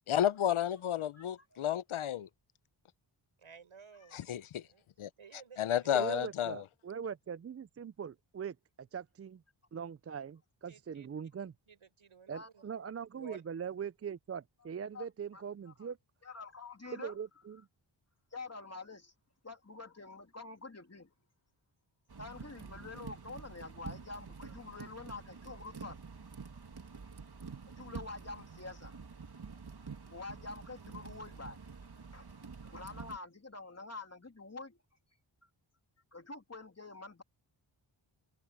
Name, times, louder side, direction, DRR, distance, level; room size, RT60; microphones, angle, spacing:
voice 1, 0.1-2.3 4.1-4.6 5.0-5.1 5.6-6.6, left 10 dB, 80° left, 0.7 m, -32 dB
voice 2, 3.4-4.2 4.6-4.8 5.2-5.9 10.7-11.1 11.7-12.9 13.1-13.4, right 6 dB, 85° right, 5.8 m, -55 dB
voice 3, 5.9-9.4 9.7-11.5 12.3-16.0 16.9-17.7, right 7 dB, 35° right, 0.4 m, -41 dB
voice 4, 16.2-17.2 18.3-19.1 19.4-21.1 22.2-26.0 27.8-29.0 30.1-31.6 32.1-32.3 32.6-34.8 36.1-37.2, left 3 dB, 30° left, 2.8 m, -47 dB
sound 1, 22.1-33.2, right 5 dB, 50° right, 2.4 m, -48 dB
cardioid pair, 60°, 48 cm